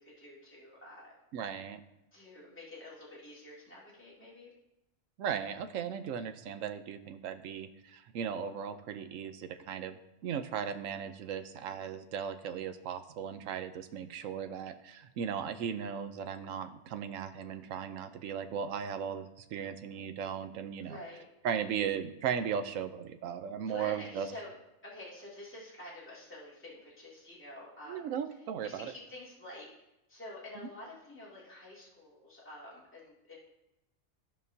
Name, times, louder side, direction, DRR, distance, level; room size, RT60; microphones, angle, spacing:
voice 1, 0.0-1.1 2.1-4.5 20.8-21.2 23.6-24.5 24.8-28.1 28.6-29.7 30.1-33.4, left 1 dB, 10° left, -8 dB, 2.4 m, -48 dB
voice 2, 1.3-1.8 5.2-21.0 21.4-24.3 27.9-28.9, right 8 dB, 75° right, 10 dB, 1.0 m, -37 dB
15.0 x 5.3 x 2.7 m, 0.90 s
omnidirectional pair, 1.4 m